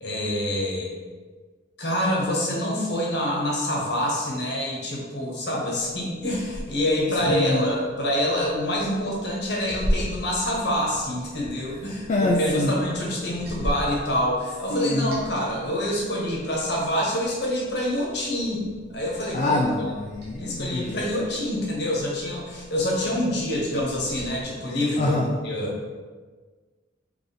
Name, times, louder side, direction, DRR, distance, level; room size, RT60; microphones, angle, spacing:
voice 1, 0.0-0.9 1.8-18.6 18.9-19.6 20.4-25.2 25.4-25.7, left 1 dB, 60° left, -3 dB, 1.1 m, -26 dB
Liquid, 5.8-24.4, equal, 55° right, 1.3 m, -38 dB
voice 2, 7.3-7.6 12.1-12.7 14.7-15.1 19.3-21.0 25.0-25.4, left 1 dB, 40° left, -1 dB, 0.3 m, -25 dB
3.6 x 3.3 x 3.9 m, 1.4 s
head